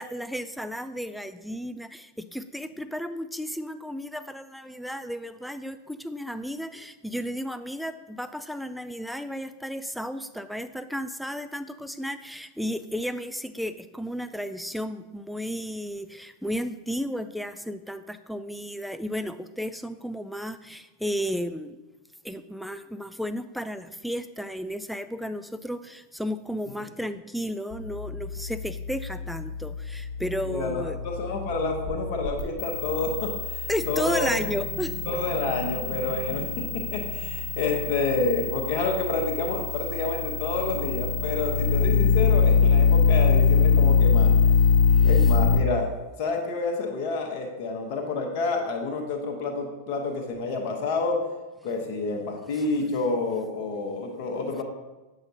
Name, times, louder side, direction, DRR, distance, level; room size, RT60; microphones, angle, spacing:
voice 1, 0.0-21.8 22.2-31.0 33.7-34.9 44.9-45.1, equal, ahead, 10 dB, 0.3 m, -33 dB
sound 1, 27.7-45.6, left 5 dB, 25° left, 1.3 m, -24 dB
voice 2, 30.5-34.5 35.1-44.3 45.0-45.9 46.2-51.2 51.6-54.6, left 3 dB, 45° left, 2 dB, 1.0 m, -29 dB
7.8 x 5.7 x 2.7 m, 1.1 s
figure-of-eight pair, 90°, 0 cm